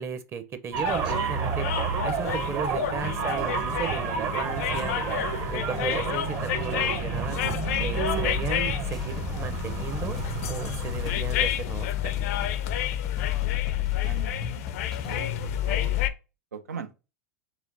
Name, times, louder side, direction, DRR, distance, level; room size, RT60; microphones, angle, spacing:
voice 1, 0.0-1.7 2.0-5.1 5.5-7.4 7.8-10.2 10.5-12.3, right 6 dB, 30° right, 0.8 m, -35 dB
sound 1, 0.7-11.1, right 5 dB, 50° right, 1.2 m, -30 dB
sound 2, 0.8-16.1, left 12 dB, 65° left, 0.5 m, -30 dB
sound 3, 7.2-15.2, left 2 dB, ahead, 0.5 m, -42 dB
voice 2, 14.0-14.7 15.0-16.0 16.5-16.9, right 6 dB, 85° right, 0.6 m, -40 dB
4.9 x 3.5 x 2.7 m
hypercardioid pair, 95°, 8 cm